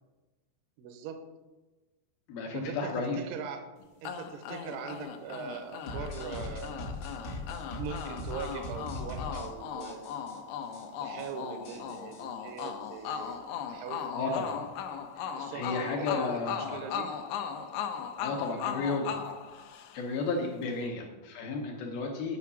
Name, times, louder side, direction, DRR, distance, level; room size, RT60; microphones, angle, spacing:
voice 1, 0.8-1.2 2.5-3.7 4.0-6.9 7.8-10.1 11.0-13.4 13.7-14.3 15.3-17.2 20.6-21.0, right 6 dB, 80° right, 6 dB, 3.2 m, -41 dB
voice 2, 2.3-3.2 14.1-14.6 15.2-16.9 18.2-19.1 19.9-22.4, left 4 dB, 75° left, 1 dB, 2.2 m, -33 dB
sound 1, 4.0-20.2, left 7 dB, 90° left, 2.3 m, -38 dB
sound 2, 5.9-9.5 9.8-10.4 10.7-10.8 11.1-11.3 11.6-13.3, left 2 dB, 55° left, 1.3 m, -40 dB
8.5 x 5.8 x 7.1 m, 1.2 s
omnidirectional pair, 5.6 m